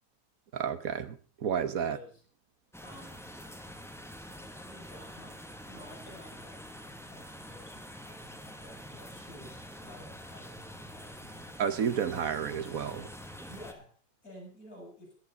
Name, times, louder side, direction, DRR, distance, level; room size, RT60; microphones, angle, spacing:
voice 1, 0.5-2.0 11.6-13.1, right 7 dB, 65° right, 13 dB, 1.3 m, -31 dB
voice 2, 1.7-2.2 2.8-3.2 3.5-3.9 4.7-11.6 13.5-14.0 14.2-15.2, left 1 dB, 65° left, 1 dB, 6.8 m, -52 dB
sound 1, 2.7-13.7, equal, ahead, 1.2 m, -46 dB
14.0 x 11.5 x 5.1 m, 0.39 s
omnidirectional pair, 1.7 m